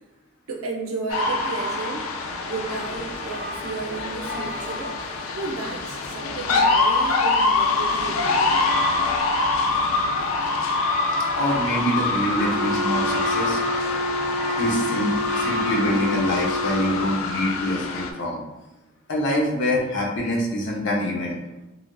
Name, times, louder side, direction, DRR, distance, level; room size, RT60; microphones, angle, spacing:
voice 1, 0.5-2.1 2.4-4.9 5.3-8.8, right 3 dB, 85° right, 1 dB, 0.5 m, -33 dB
sound 1, 1.1-18.1, left 3 dB, 85° left, 0.4 m, -25 dB
sound 2, 2.7-17.2, left 1 dB, 25° left, 0.9 m, -34 dB
voice 2, 11.4-13.6 14.6-18.4 19.1-21.4, left 1 dB, 60° left, -2 dB, 0.7 m, -25 dB
Wind instrument woodwind instrument, 12.4-17.0, left 1 dB, ahead, 0.3 m, -28 dB
3.2 x 2.4 x 2.3 m, 0.98 s
head